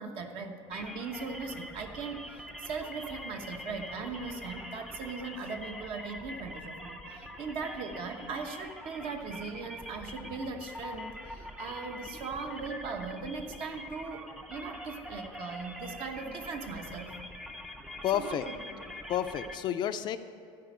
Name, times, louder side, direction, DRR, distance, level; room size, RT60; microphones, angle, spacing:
voice 1, 0.0-17.2 18.1-18.6, right 4 dB, 50° right, 5 dB, 1.1 m, -39 dB
sound 1, 0.7-19.6, left 1 dB, 5° right, 0.6 m, -44 dB
voice 2, 18.0-18.4 19.1-20.2, left 10 dB, 40° left, 10 dB, 0.4 m, -30 dB
13.0 x 5.2 x 9.0 m, 2.4 s
cardioid pair, 155°, 12 cm